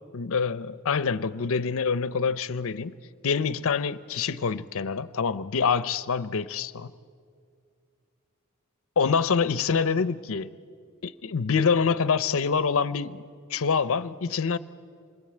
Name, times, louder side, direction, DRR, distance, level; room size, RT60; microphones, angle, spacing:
voice 1, 0.1-2.9 3.2-6.9 9.0-10.5 11.0-14.6, left 5 dB, 65° left, 0.6 m, -26 dB
27.0 x 21.5 x 8.7 m
head